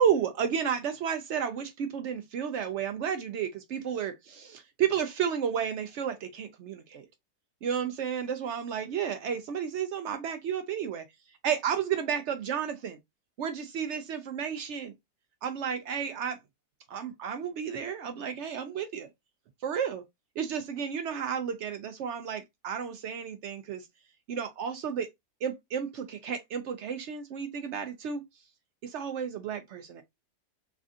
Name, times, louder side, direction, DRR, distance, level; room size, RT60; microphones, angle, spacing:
voice 1, 0.0-7.1 7.6-11.0 11.4-13.0 13.4-14.9 15.4-16.4 16.9-19.1 19.6-20.0 20.4-23.9 24.3-25.1 25.4-28.2 28.8-30.0, right 8 dB, 80° right, 0.6 m, -32 dB
3.3 x 2.4 x 2.5 m
omnidirectional pair, 1.7 m